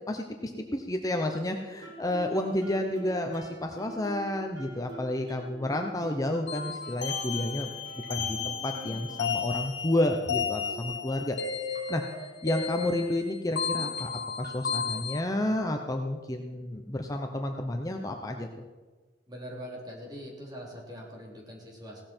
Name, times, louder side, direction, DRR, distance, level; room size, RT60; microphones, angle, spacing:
voice 1, 0.1-7.7 8.1-11.4 11.7-12.0 12.4-14.1 14.4-18.6, left 1 dB, 20° left, 3 dB, 0.8 m, -31 dB
Guitar, 1.8-9.5, right 1 dB, 80° right, 3.1 m, -46 dB
sound 1, 6.5-15.2, left 6 dB, 85° left, 1.4 m, -34 dB
sound 2, 8.0-8.5 8.9-9.1 9.9-10.4 10.7-11.0 11.7-12.2 12.6-12.9 13.6-14.0 14.4-14.8, equal, 60° right, 3.7 m, -44 dB
voice 2, 19.3-22.0, equal, 25° right, -2 dB, 3.4 m, -42 dB
16.5 x 13.0 x 4.5 m, 1.3 s
head